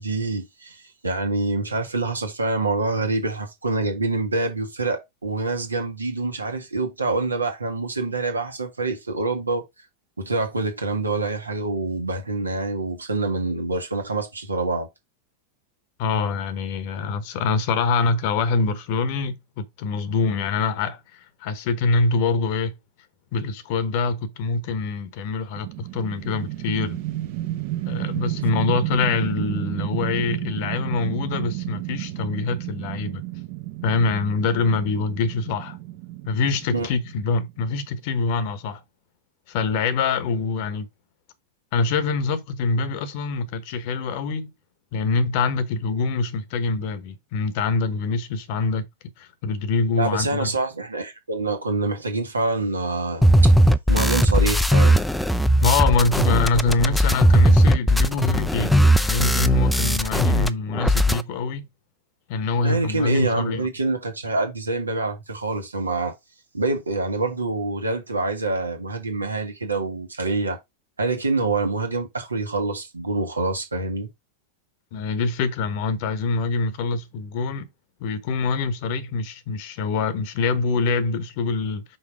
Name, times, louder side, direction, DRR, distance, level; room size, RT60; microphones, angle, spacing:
voice 1, 0.0-9.6 10.2-14.9 36.7-36.9 50.0-55.0 62.6-66.1 66.5-70.6 71.0-74.1, right 3 dB, 80° right, 1.4 m, -26 dB
voice 2, 16.0-22.7 23.3-27.0 27.9-33.2 33.8-35.8 36.3-38.8 39.5-40.9 41.7-44.5 44.9-48.8 49.2-50.5 55.6-61.7 62.3-63.7 74.9-77.7 78.0-81.8, left 4 dB, 45° left, 1.0 m, -24 dB
sound 1, 25.5-37.8, right 16 dB, 50° right, 0.9 m, -31 dB
sound 2, 53.2-60.5 60.7-61.2, equal, ahead, 0.5 m, -18 dB
5.6 x 4.0 x 4.6 m
figure-of-eight pair, 90°, 0 cm